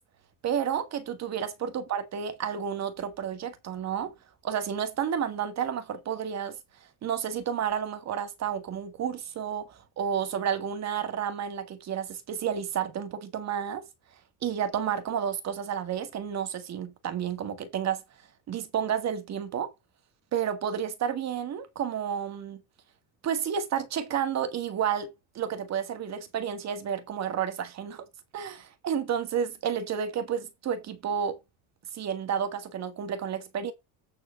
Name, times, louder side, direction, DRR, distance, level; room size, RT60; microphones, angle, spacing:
voice 1, 0.4-4.1 4.4-6.6 7.0-13.9 14.4-18.0 18.5-19.7 20.3-22.6 23.2-28.1 28.3-31.4 31.9-33.7, right 8 dB, 40° right, 1.7 m, -31 dB
9.2 x 4.3 x 5.2 m
cardioid pair, 145°, 41 cm